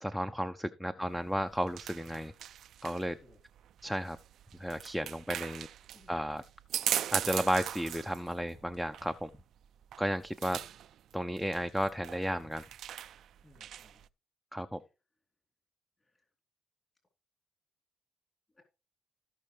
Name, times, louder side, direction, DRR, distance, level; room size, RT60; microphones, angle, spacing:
voice 1, 0.0-2.3 2.8-3.2 3.8-4.2 4.6-5.7 6.1-6.4 7.1-9.3 10.0-10.6 11.1-12.6 14.5-14.8, equal, ahead, 0.6 m, -33 dB
sound 1, 1.1-14.1, right 10 dB, 70° right, 0.4 m, -40 dB
voice 2, 13.4-14.0 16.0-16.2 18.5-18.6, left 2 dB, 25° left, 3.2 m, -61 dB
16.5 x 5.5 x 3.2 m
cardioid pair, 90°, 0 cm